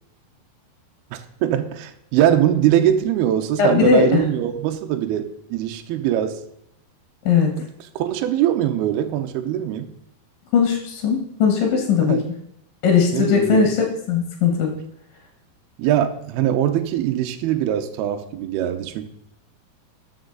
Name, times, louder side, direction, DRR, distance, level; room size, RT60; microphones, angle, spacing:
voice 1, 1.1-6.4 8.0-9.9 12.0-12.2 13.1-13.7 15.8-19.1, right 11 dB, 80° right, 7 dB, 2.3 m, -22 dB
voice 2, 3.6-4.2 7.3-7.5 10.5-12.2 12.8-13.8 14.1-14.7, left 6 dB, 60° left, 2 dB, 2.7 m, -18 dB
13.5 x 6.4 x 3.9 m, 0.76 s
omnidirectional pair, 5.3 m